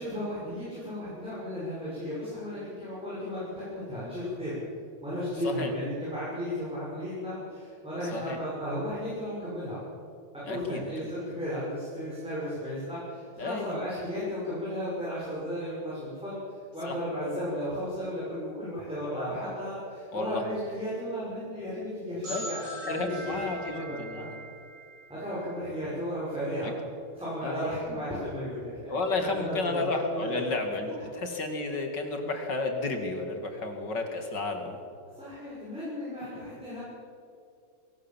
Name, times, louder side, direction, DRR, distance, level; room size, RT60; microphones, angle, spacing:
voice 1, 0.0-4.6 5.0-9.8 10.5-16.4 16.7-23.4 23.7-24.3 25.1-26.7 27.2-28.9 29.2-29.8 30.1-30.4 30.8-30.9 35.1-36.8, equal, 5° right, -9 dB, 6.6 m, -34 dB
voice 2, 10.5-10.9 13.4-13.8 16.9-17.0 20.1-20.4 22.3-22.5 22.8-24.3 26.6-26.7 27.4-27.8 28.9-34.8 36.3-36.4, left 3 dB, 60° left, 4 dB, 3.1 m, -32 dB
sound 1, 22.2-25.9, right 2 dB, 80° right, 8.8 m, -41 dB
21.5 x 18.5 x 7.5 m, 2.5 s
omnidirectional pair, 2.2 m